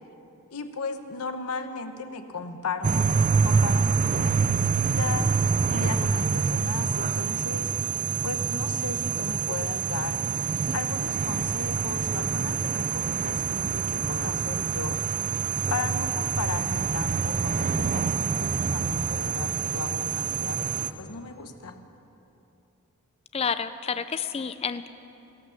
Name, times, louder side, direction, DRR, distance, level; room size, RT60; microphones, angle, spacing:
voice 1, 0.5-5.3 5.7-7.7 8.2-10.2 10.7-15.0 15.7-21.8, left 4 dB, 85° left, 8 dB, 0.9 m, -35 dB
sound 1, 2.8-20.9, right 5 dB, 35° right, 0.4 m, -26 dB
voice 2, 23.3-24.9, left 6 dB, 25° left, 12 dB, 0.4 m, -29 dB
14.0 x 12.0 x 7.0 m, 2.9 s
head